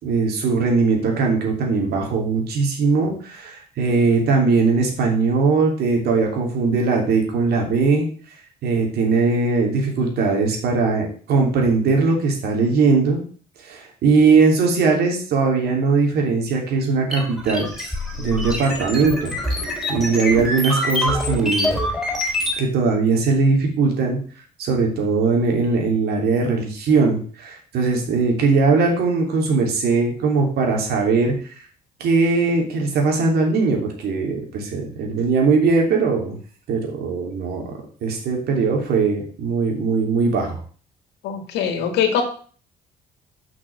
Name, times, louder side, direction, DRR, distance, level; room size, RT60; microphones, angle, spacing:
voice 1, 0.0-8.1 8.6-13.2 13.6-17.7 18.2-19.4 19.9-21.8 22.6-24.2 24.6-31.3 32.0-36.4 36.7-40.6, right 4 dB, 70° right, 1 dB, 3.1 m, -20 dB
sound 1, 17.1-22.6, left 1 dB, ahead, 4.2 m, -25 dB
voice 2, 41.2-42.2, left 8 dB, 85° left, 5 dB, 2.2 m, -22 dB
6.2 x 6.2 x 6.6 m, 0.44 s
cardioid pair, 110°, 17 cm